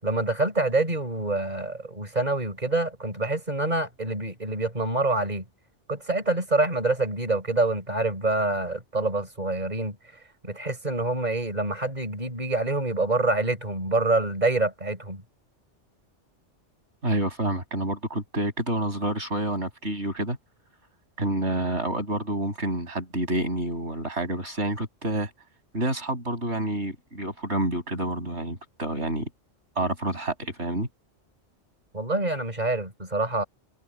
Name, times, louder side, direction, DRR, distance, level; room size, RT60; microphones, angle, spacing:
voice 1, 0.0-5.5 5.9-10.0 10.4-15.2 31.9-33.4, right 2 dB, 35° right, 5.3 m, -26 dB
voice 2, 17.0-20.4 21.2-25.3 25.7-29.3 29.8-30.9, right 1 dB, 65° right, 7.1 m, -28 dB
omnidirectional pair, 1.2 m